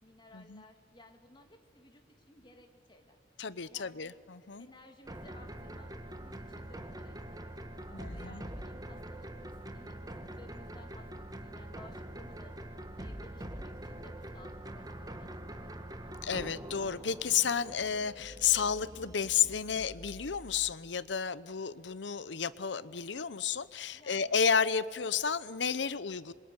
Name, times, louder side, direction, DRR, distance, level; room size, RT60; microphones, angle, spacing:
voice 1, 0.0-3.2 3.7-4.1 4.6-12.6 13.0-16.1 23.9-24.4, left 1 dB, 25° left, 4 dB, 2.7 m, -58 dB
voice 2, 3.4-4.7 7.9-8.4 16.2-26.3, left 7 dB, 70° left, 17 dB, 0.8 m, -32 dB
sound 1, 5.1-20.7, right 1 dB, 20° right, 1.4 m, -44 dB
26.5 x 22.5 x 9.6 m, 2.2 s
head